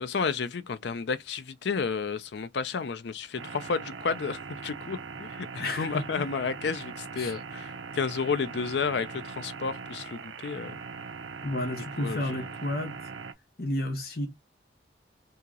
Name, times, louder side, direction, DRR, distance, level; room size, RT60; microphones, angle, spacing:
voice 1, 0.0-10.8 12.0-12.5, left 5 dB, 70° left, 0.5 m, -32 dB
sound 1, 3.4-13.3, right 5 dB, 90° right, 0.5 m, -41 dB
voice 2, 5.6-6.3 7.2-7.4 11.4-13.0 13.6-14.3, left 1 dB, 55° left, 1.0 m, -32 dB
2.8 x 2.8 x 3.6 m
head